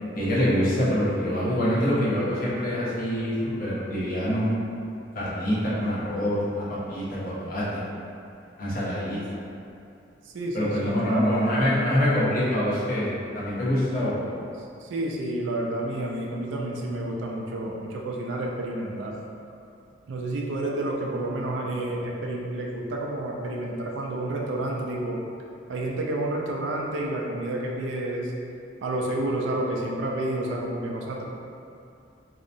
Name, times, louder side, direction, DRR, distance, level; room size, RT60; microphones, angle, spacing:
voice 1, 0.1-4.5 5.1-7.8 8.6-9.4 10.5-14.4, equal, 50° left, -8 dB, 0.6 m, -25 dB
voice 2, 10.2-11.7 13.9-14.0 14.6-19.2 20.1-25.2 25.7-28.3 28.8-31.2, right 1 dB, 85° right, -1 dB, 0.4 m, -30 dB
2.7 x 2.0 x 2.5 m, 2.5 s
head